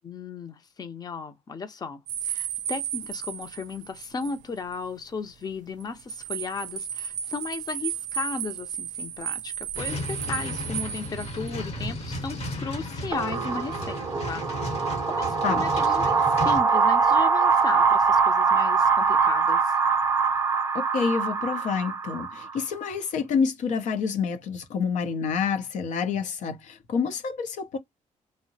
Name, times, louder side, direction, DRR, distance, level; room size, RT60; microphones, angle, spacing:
voice 1, 0.0-14.5 14.8-19.7, left 4 dB, 30° left, 0.6 m, -35 dB
sound 1, 2.1-4.4 4.7-4.8 5.8-11.5, right 9 dB, 85° right, 0.4 m, -34 dB
sound 2, 9.7-16.6, left 1 dB, 55° left, 1.0 m, -34 dB
sound 3, 13.1-22.6, right 5 dB, 25° right, 0.5 m, -23 dB
voice 2, 20.7-27.8, left 6 dB, 80° left, 0.6 m, -28 dB
2.7 x 2.0 x 2.6 m
cardioid pair, 110°, 13 cm